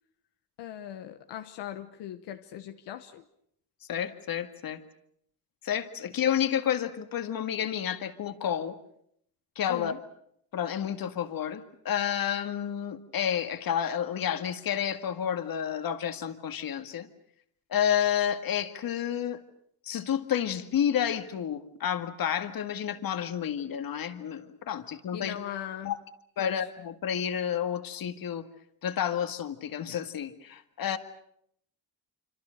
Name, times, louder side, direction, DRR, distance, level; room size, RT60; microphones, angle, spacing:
voice 1, 0.6-3.2 9.7-10.0 25.1-26.0 26.4-26.7, left 10 dB, 85° left, 7 dB, 1.3 m, -39 dB
voice 2, 3.9-4.8 5.6-8.8 9.6-9.9 10.5-17.1 17.7-19.4 19.9-25.4 25.8-26.0 26.4-28.5 28.8-31.0, left 9 dB, 60° left, 9 dB, 2.0 m, -30 dB
26.5 x 26.5 x 6.6 m, 0.71 s
cardioid pair, 95°, 40 cm